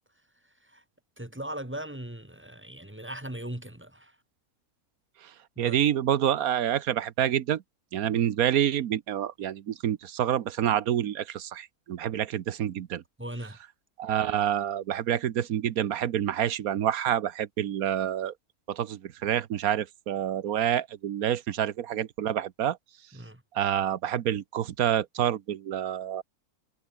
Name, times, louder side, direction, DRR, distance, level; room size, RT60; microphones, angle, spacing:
voice 1, 1.2-4.2 5.6-5.8 8.0-8.2 13.2-13.6 23.1-23.4, right 1 dB, 10° right, 1.8 m, -39 dB
voice 2, 5.2-7.6 7.9-13.0 14.0-18.3 18.7-22.8 23.5-26.2, right 10 dB, 70° right, 1.3 m, -28 dB
omnidirectional pair, 1.6 m